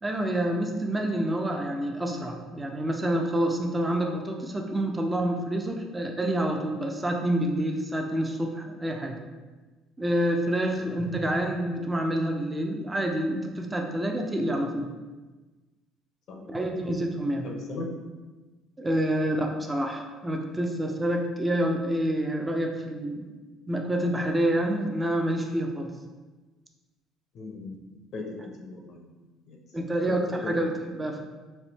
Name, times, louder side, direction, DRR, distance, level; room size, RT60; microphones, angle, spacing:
voice 1, 0.0-9.2 10.0-14.9 16.5-17.5 18.8-23.3 23.7-25.9 29.7-30.7 31.0-31.2, right 1 dB, 15° right, 3 dB, 0.5 m, -28 dB
voice 2, 17.4-17.9 27.3-27.8 28.1-28.3 28.6-29.2 29.5-29.6 30.1-30.2 30.4-30.7, left 3 dB, 60° left, 1 dB, 0.7 m, -38 dB
3.4 x 2.6 x 4.0 m, 1.2 s
cardioid pair, 110°, 0 cm